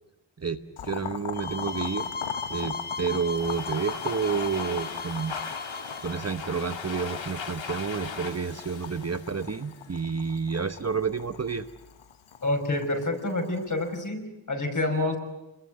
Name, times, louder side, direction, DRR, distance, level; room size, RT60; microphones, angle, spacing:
voice 1, 0.4-2.1 2.5-5.7 6.0-11.6, right 5 dB, 30° right, 9 dB, 1.1 m, -30 dB
Boiling, 0.8-14.0, left 9 dB, 90° left, 1.4 m, -41 dB
sound 1, 1.3-6.2, left 3 dB, 20° left, 1.7 m, -37 dB
Domestic sounds home sounds, 3.1-10.0, left 5 dB, 70° left, 2.5 m, -38 dB
voice 2, 12.4-15.2, left 2 dB, 40° left, 3 dB, 6.1 m, -28 dB
28.5 x 22.0 x 7.9 m, 0.94 s
wide cardioid pair, 120°, 47 cm